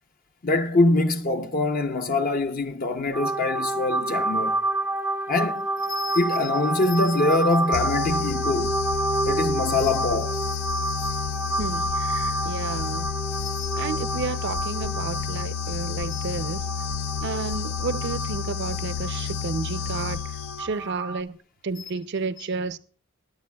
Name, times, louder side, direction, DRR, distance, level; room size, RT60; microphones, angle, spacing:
voice 1, 0.4-4.6 5.3-8.8 9.2-11.0 13.4-13.8 16.1-16.2, left 2 dB, 45° left, 0.6 m, -24 dB
sound 1, 3.1-21.2, right 2 dB, 5° right, 0.6 m, -29 dB
sound 2, 7.7-20.9, left 7 dB, 85° left, 0.5 m, -31 dB
voice 2, 11.6-13.1 13.7-16.7 17.2-21.4 21.6-22.8, right 4 dB, 55° right, 0.5 m, -31 dB
18.5 x 9.0 x 2.2 m
head